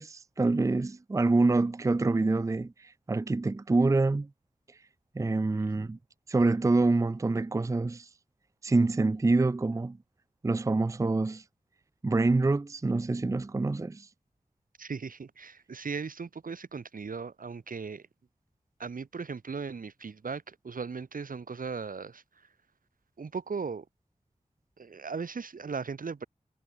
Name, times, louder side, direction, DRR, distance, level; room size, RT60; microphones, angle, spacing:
voice 1, 0.0-4.3 4.7-4.9 5.1-6.0 6.3-8.2 8.6-10.0 10.4-11.5 12.0-14.1, right 3 dB, 25° right, 0.4 m, -26 dB
voice 2, 14.8-18.1 18.8-22.5 23.2-23.9 24.8-26.3, right 5 dB, 85° right, 2.2 m, -38 dB
wide cardioid pair, 90°, 14 cm